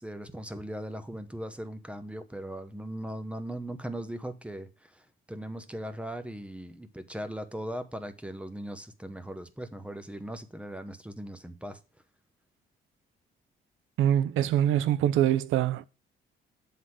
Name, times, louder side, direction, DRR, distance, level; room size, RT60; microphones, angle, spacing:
voice 1, 0.0-11.8, right 1 dB, 5° right, 0.8 m, -39 dB
voice 2, 14.0-15.8, right 11 dB, 80° right, 0.5 m, -24 dB
7.8 x 3.7 x 6.1 m
cardioid pair, 90°, 20 cm